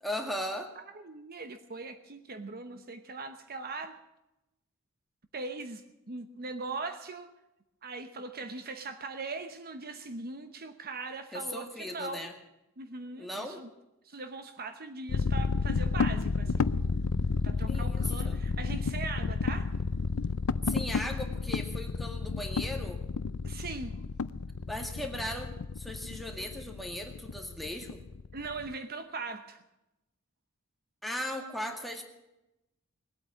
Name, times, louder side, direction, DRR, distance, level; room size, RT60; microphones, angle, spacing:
voice 1, 0.0-0.7 11.3-12.3 13.2-13.6 17.7-18.4 20.7-23.0 24.7-28.0 31.0-32.0, left 1 dB, ahead, 2 dB, 2.0 m, -37 dB
voice 2, 0.8-4.0 5.3-7.3 7.8-12.3 12.8-13.7 14.0-16.7 17.4-19.7 23.4-23.9 28.3-29.6, right 3 dB, 45° right, 8 dB, 0.9 m, -40 dB
sound 1, 15.1-28.7, left 4 dB, 70° left, 0.5 m, -31 dB
19.5 x 8.8 x 8.4 m, 0.92 s
head